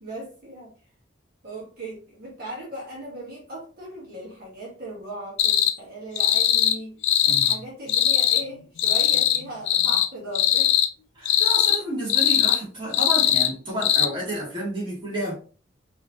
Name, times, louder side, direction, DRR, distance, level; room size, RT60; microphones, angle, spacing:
voice 1, 0.0-0.7 1.4-6.9 7.2-10.7, right 1 dB, 50° right, 1.5 m, -38 dB
sound 1, 5.4-5.7 6.2-6.8 7.0-7.6 7.9-8.4 8.8-9.4 9.7-10.1 10.3-10.9 11.3-11.8 12.1-12.6 12.9-13.5 13.8-14.1, left 10 dB, 75° left, 0.4 m, -20 dB
voice 2, 7.3-7.6 11.2-15.3, right 1 dB, 25° right, 1.9 m, -31 dB
4.8 x 3.0 x 2.9 m
head